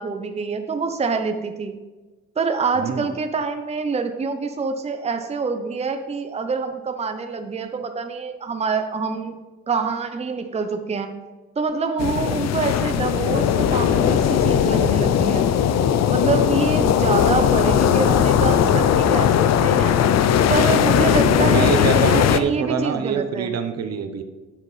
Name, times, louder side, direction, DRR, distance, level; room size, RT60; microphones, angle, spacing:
voice 1, 0.0-1.8 2.4-9.3 9.7-11.1 11.6-15.5 16.1-20.0 20.5-23.6, right 4 dB, 20° right, 7 dB, 0.7 m, -26 dB
voice 2, 2.8-3.1 16.7-16.8 21.0-24.2, right 7 dB, 60° right, 7 dB, 0.9 m, -26 dB
sound 1, 12.0-22.4, left 9 dB, 60° left, 0.6 m, -18 dB
9.6 x 7.6 x 3.2 m, 1.2 s
cardioid pair, 90°, 30 cm